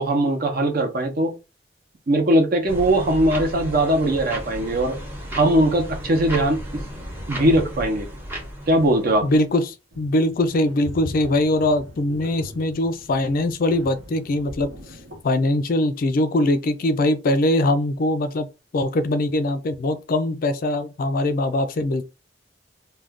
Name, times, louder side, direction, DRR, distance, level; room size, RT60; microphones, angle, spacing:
voice 1, 0.0-1.3 2.1-5.0 5.3-6.8 7.3-8.1 8.7-9.3, right 1 dB, 55° right, 0.7 m, -20 dB
sound 1, 2.7-9.5, equal, 10° right, 0.7 m, -34 dB
voice 2, 9.2-14.7 15.2-18.5 18.7-22.0, left 1 dB, 50° left, 0.4 m, -22 dB
sound 2, 9.9-15.2, left 1 dB, 85° right, 1.0 m, -40 dB
2.4 x 2.2 x 3.4 m
head